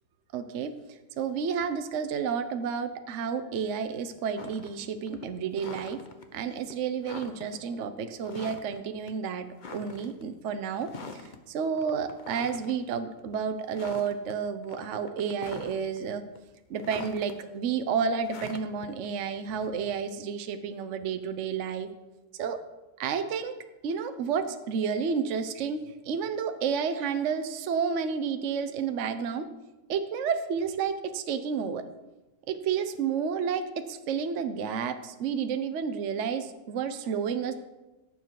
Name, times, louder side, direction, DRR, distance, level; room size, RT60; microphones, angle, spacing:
voice 1, 0.3-0.7 1.2-6.0 6.3-11.2 11.5-16.2 16.7-21.9 22.4-22.6 23.0-23.5 23.8-29.5 29.9-31.8 32.5-37.5, right 6 dB, 55° right, 8 dB, 1.0 m, -31 dB
sound 1, 4.4-4.8 5.1-6.2 6.7-6.8 7.0-7.6 8.2-8.8 9.1-9.2 9.6-10.2 10.8-11.4 11.8-12.8 13.2-13.4 13.7-14.3 14.6-16.0 16.3-17.3 18.2-20.0, left 4 dB, 35° left, 0.9 m, -43 dB
17.5 x 7.5 x 4.7 m, 1.1 s
omnidirectional pair, 1.8 m